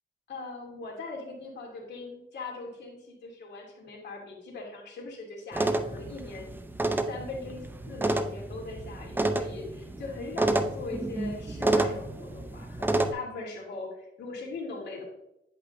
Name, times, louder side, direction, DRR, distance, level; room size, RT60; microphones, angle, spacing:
voice 1, 0.3-6.5 7.1-15.0, left 3 dB, 60° left, -2 dB, 2.6 m, -40 dB
sound 1, 5.5-13.1, right 2 dB, 10° right, 0.5 m, -29 dB
9.6 x 5.4 x 2.6 m, 0.83 s
cardioid pair, 90°, 20 cm